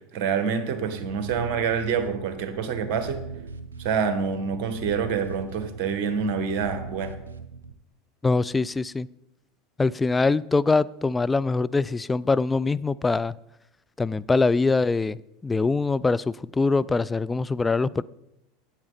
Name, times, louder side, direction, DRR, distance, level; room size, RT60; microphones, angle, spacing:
voice 1, 0.1-3.2 3.8-7.1, right 6 dB, 55° right, 8 dB, 1.6 m, -27 dB
sound 1, 0.7-7.7, right 4 dB, 90° right, 0.9 m, -40 dB
voice 2, 8.2-9.1 9.8-13.3 14.0-15.2 15.4-18.0, left 3 dB, 15° left, 17 dB, 0.4 m, -23 dB
13.5 x 8.6 x 4.1 m, 0.86 s
hypercardioid pair, 85°, 0 cm